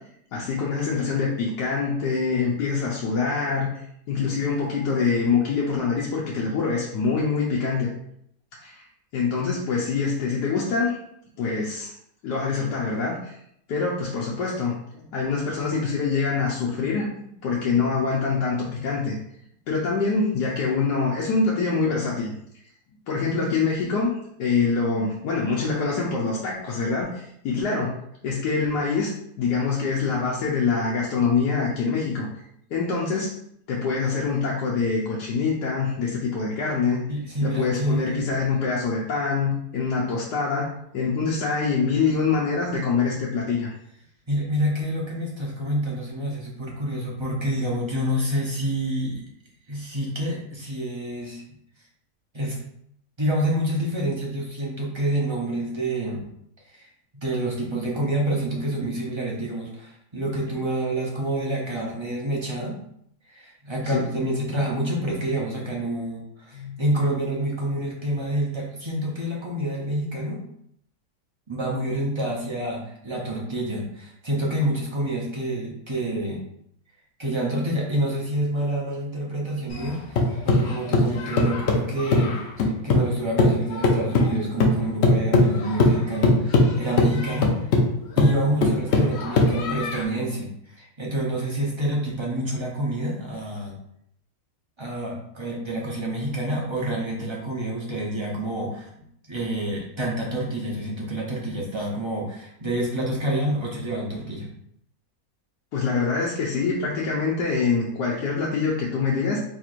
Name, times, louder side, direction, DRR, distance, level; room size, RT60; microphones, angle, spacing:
voice 1, 0.3-7.9 8.6-8.8 9.1-11.0 11.4-11.9 12.2-13.3 13.7-19.2 19.7-22.3 23.1-27.9 28.2-29.1 29.4-32.3 32.7-33.3 33.7-37.0 37.4-43.7 63.8-64.0 66.5-66.8 105.7-109.4, left 4 dB, 90° left, -4 dB, 1.3 m, -25 dB
voice 2, 37.1-38.2 44.3-49.3 49.7-51.4 52.3-52.6 53.2-56.2 56.7-56.9 57.1-62.8 63.3-70.4 71.5-76.4 77.2-87.5 88.1-93.8 94.8-104.5, right 1 dB, 25° right, -3 dB, 0.6 m, -28 dB
sound 1, 79.7-83.1 83.4-90.0, left 2 dB, 60° left, 0.7 m, -20 dB
4.4 x 3.4 x 2.5 m, 0.71 s
omnidirectional pair, 1.7 m